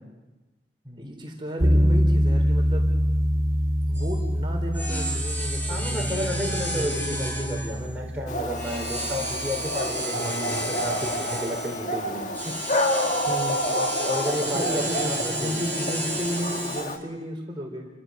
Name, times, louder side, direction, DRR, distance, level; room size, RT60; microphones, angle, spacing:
voice 1, 1.0-2.9 3.9-6.0 6.7-7.2 13.3-13.7 14.4-17.9, equal, 25° right, 1 dB, 4.1 m, -33 dB
sound 1, 1.6-9.8, equal, 45° right, 3.1 m, -25 dB
sound 2, 3.9-4.2 4.7-7.9 8.5-11.8 12.3-16.8, right 1 dB, 10° left, 5.6 m, -32 dB
voice 2, 5.7-12.6 14.1-15.6, equal, 10° right, -2 dB, 4.1 m, -32 dB
Dog, 8.3-17.0, left 1 dB, 45° left, 1.8 m, -29 dB
29.5 x 24.0 x 6.5 m, 1.1 s
head